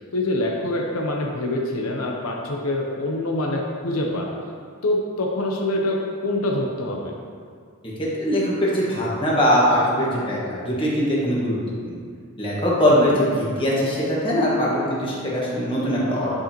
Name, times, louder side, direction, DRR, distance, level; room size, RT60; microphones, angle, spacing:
voice 1, 0.1-4.3 4.8-6.0 6.2-7.1 12.9-13.2, left 1 dB, 80° left, 0 dB, 0.8 m, -25 dB
voice 2, 8.0-11.6 11.9-12.0 12.4-13.3 13.6-16.3, equal, 25° left, -6 dB, 1.6 m, -21 dB
9.7 x 5.2 x 3.0 m, 2.1 s
head